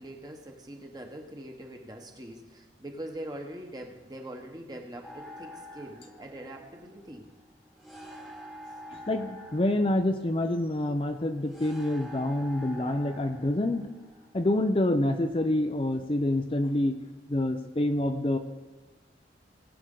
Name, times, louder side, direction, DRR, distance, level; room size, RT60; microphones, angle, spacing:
voice 1, 0.0-7.3, right 1 dB, 20° right, 2 dB, 1.3 m, -43 dB
sound 1, 5.0-15.0, equal, ahead, 1.4 m, -47 dB
voice 2, 8.9-13.9 14.3-17.0 17.3-18.4, left 1 dB, 30° left, 6 dB, 0.6 m, -27 dB
20.0 x 7.8 x 3.9 m, 1.2 s
head